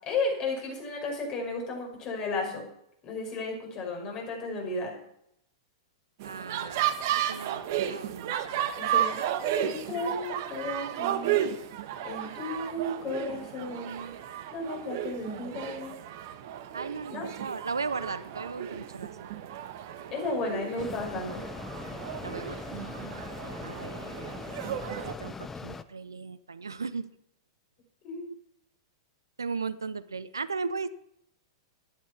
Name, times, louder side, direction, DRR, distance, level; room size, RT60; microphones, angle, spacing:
voice 1, 0.0-2.7 3.0-5.0 8.7-9.2 9.5-11.5 12.0-14.1 14.5-16.0 17.1-17.3 20.1-21.4 28.0-28.3, left 3 dB, 35° left, 1 dB, 5.4 m, -34 dB
sound 1, 6.2-25.1, right 11 dB, 50° right, 1.2 m, -33 dB
voice 2, 6.2-7.6 7.9-8.7 16.7-19.1 22.2-22.7 23.6-24.4 25.1-27.1 29.4-30.9, right 4 dB, 75° right, 15 dB, 0.6 m, -36 dB
Mechanisms, 20.8-25.8, left 4 dB, 10° left, 0.7 m, -40 dB
12.5 x 10.5 x 5.8 m, 0.75 s
figure-of-eight pair, 100°, 2 cm